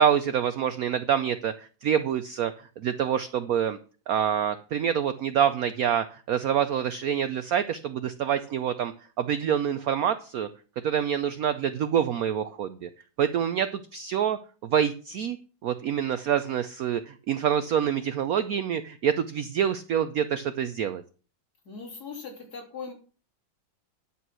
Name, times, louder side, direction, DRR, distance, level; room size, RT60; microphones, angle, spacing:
voice 1, 0.0-3.8 4.1-10.5 10.8-12.9 13.2-15.4 15.6-21.0, right 8 dB, 70° right, 12 dB, 0.8 m, -26 dB
voice 2, 21.7-22.9, left 5 dB, 50° left, -1 dB, 3.6 m, -39 dB
10.5 x 7.0 x 6.0 m, 0.39 s
omnidirectional pair, 2.2 m